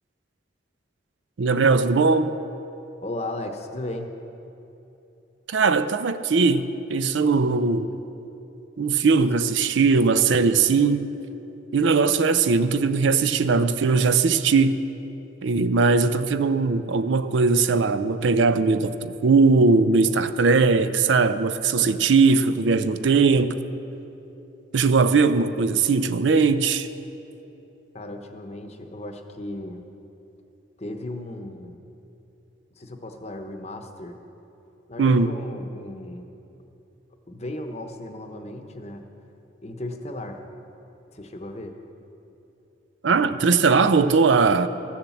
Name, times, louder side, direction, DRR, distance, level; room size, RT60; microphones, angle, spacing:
voice 1, 1.4-2.3 5.5-7.9 8.8-11.1 11.7-14.8 15.4-23.6 24.7-26.9 35.0-35.3 43.0-44.7, right 4 dB, 80° right, 0.5 m, -20 dB
voice 2, 3.0-4.1 27.9-29.8 30.8-31.8 32.8-34.2 34.9-36.3 37.3-39.1 39.6-40.4 41.1-41.7, left 1 dB, 35° left, 0.8 m, -35 dB
14.0 x 7.2 x 7.1 m
head